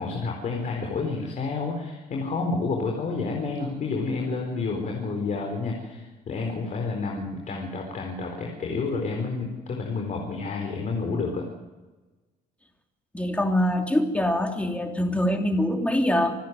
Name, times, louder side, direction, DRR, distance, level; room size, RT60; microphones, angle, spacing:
voice 1, 0.0-11.5, left 4 dB, 50° left, 1 dB, 4.3 m, -29 dB
voice 2, 13.1-16.3, left 1 dB, 10° left, 3 dB, 3.0 m, -24 dB
26.5 x 10.5 x 9.6 m, 1.2 s
cardioid pair, 110°, 17 cm